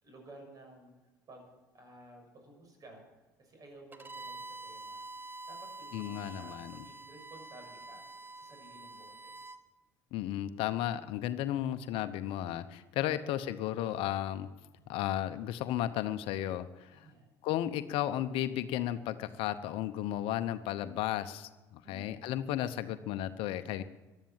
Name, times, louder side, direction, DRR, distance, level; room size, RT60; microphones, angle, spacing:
voice 1, 0.0-0.9 1.3-1.5 1.7-3.0 3.4-5.1 5.5-9.6 16.9-17.3 21.8-22.1, right 1 dB, 40° right, 3 dB, 6.7 m, -54 dB
Bowed string instrument, 3.9-9.6, right 3 dB, 20° right, 0.9 m, -47 dB
voice 2, 5.9-6.7 10.1-14.5 14.9-17.1 17.4-23.8, left 12 dB, 65° left, 12 dB, 0.8 m, -34 dB
14.5 x 12.0 x 7.4 m, 1.2 s
hypercardioid pair, 75°, 10 cm